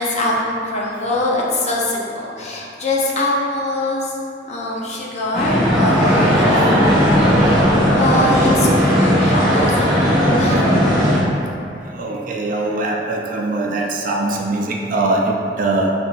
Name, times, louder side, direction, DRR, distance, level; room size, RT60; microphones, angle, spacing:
voice 1, 0.0-4.2 4.5-11.0, left 1 dB, 40° left, -3 dB, 0.6 m, -23 dB
sound 1, 5.3-11.2, equal, ahead, 1.3 m, -15 dB
voice 2, 11.9-15.9, right 2 dB, 50° right, 0 dB, 0.4 m, -21 dB
5.5 x 2.5 x 2.5 m, 2.5 s
head